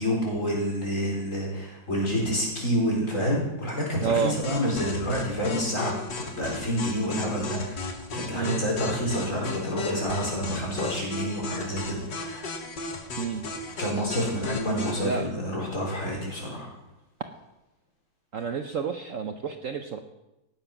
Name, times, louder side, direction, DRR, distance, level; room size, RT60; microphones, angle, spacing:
voice 1, 0.0-12.5 13.7-16.7, equal, 40° left, -3 dB, 4.5 m, -28 dB
voice 2, 4.0-4.4 8.3-8.6 13.2-13.5 15.0-15.2 18.3-20.0, right 6 dB, 60° right, 6 dB, 0.9 m, -29 dB
sound 1, 4.4-15.1, left 3 dB, 65° left, 2.3 m, -35 dB
18.0 x 7.4 x 5.9 m, 0.94 s
omnidirectional pair, 2.1 m